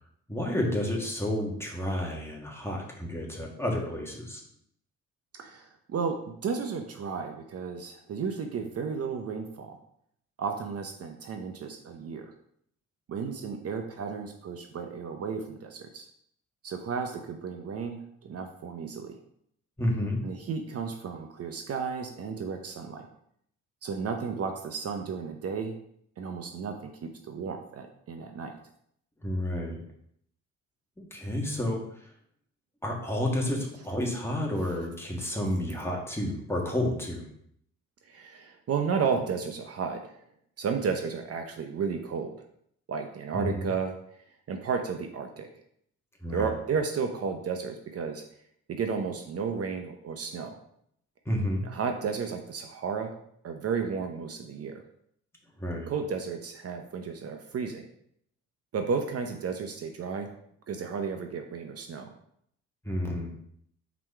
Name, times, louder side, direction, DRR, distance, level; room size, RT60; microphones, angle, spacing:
voice 1, 0.3-4.4 19.8-20.2 29.2-29.8 31.0-31.8 32.8-37.2 43.3-43.6 46.2-46.5 51.2-51.6 55.6-55.9 62.8-63.3, left 1 dB, 10° left, -1 dB, 1.6 m, -30 dB
voice 2, 5.3-9.8 10.4-12.3 13.1-16.1 16.6-19.2 20.2-23.1 23.8-25.7 26.2-28.6 35.2-35.3 38.0-40.2 40.6-42.4 42.9-43.9 44.5-45.5 46.3-48.2 48.7-50.6 51.6-53.1 53.4-54.8 55.9-57.9 58.7-60.3 60.7-62.1, right 5 dB, 50° right, 5 dB, 0.8 m, -33 dB
4.5 x 4.2 x 5.5 m, 0.69 s
cardioid pair, 90°, 30 cm